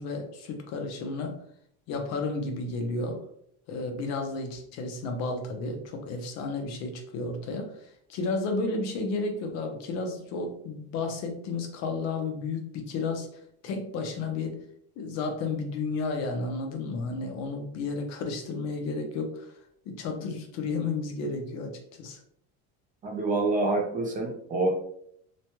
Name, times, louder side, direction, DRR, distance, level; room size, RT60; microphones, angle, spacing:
voice 1, 0.0-1.4 1.9-3.2 3.7-13.3 13.6-14.6 15.0-19.6 19.9-22.2, left 3 dB, 55° left, 4 dB, 0.6 m, -32 dB
voice 2, 23.0-24.8, right 2 dB, 25° right, 0 dB, 0.5 m, -27 dB
3.1 x 2.2 x 2.8 m, 0.68 s
cardioid pair, 150°, 33 cm